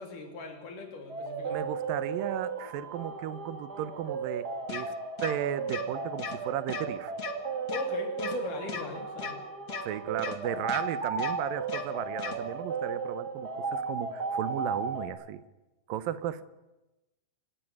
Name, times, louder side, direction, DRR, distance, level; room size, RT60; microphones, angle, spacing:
voice 1, 0.0-1.7 7.7-9.4, left 4 dB, 70° left, 4 dB, 4.3 m, -39 dB
sound 1, 1.1-15.1, right 4 dB, 30° right, 2.4 m, -35 dB
voice 2, 1.5-5.0 5.2-7.1 9.8-15.4 15.9-16.4, right 11 dB, 90° right, 15 dB, 2.7 m, -35 dB
sound 2, 4.7-4.8 5.2-5.3 5.7-5.8 6.2-6.3 6.7-6.8 7.2-7.3 7.7-7.8 8.2-8.3 8.7-8.8 9.2-9.3 9.7-9.8 10.2-10.3 10.7-10.8 11.2-11.3 11.7-11.8 12.2-12.3, left 6 dB, 45° left, 1.1 m, -36 dB
26.0 x 13.0 x 9.6 m, 1.0 s
omnidirectional pair, 3.9 m